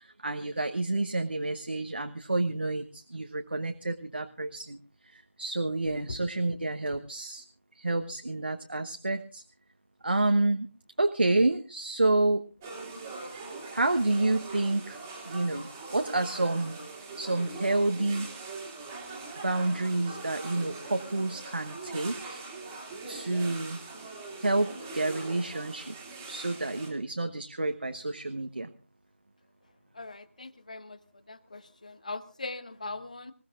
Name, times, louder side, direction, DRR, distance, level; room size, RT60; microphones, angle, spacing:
voice 1, 0.0-4.8 5.0-7.4 7.7-9.4 10.0-10.7 11.0-12.4 13.7-15.0 15.3-16.8 17.2-18.3 19.4-22.4 23.1-23.8 24.4-25.9 26.3-28.7, right 2 dB, 50° right, 6 dB, 1.1 m, -29 dB
sound 1, 12.6-26.9, right 3 dB, 10° right, 2.3 m, -42 dB
voice 2, 29.9-31.0 31.3-33.3, left 3 dB, 35° left, 14 dB, 1.0 m, -40 dB
26.0 x 15.5 x 2.5 m, 0.34 s
figure-of-eight pair, 165°, 7 cm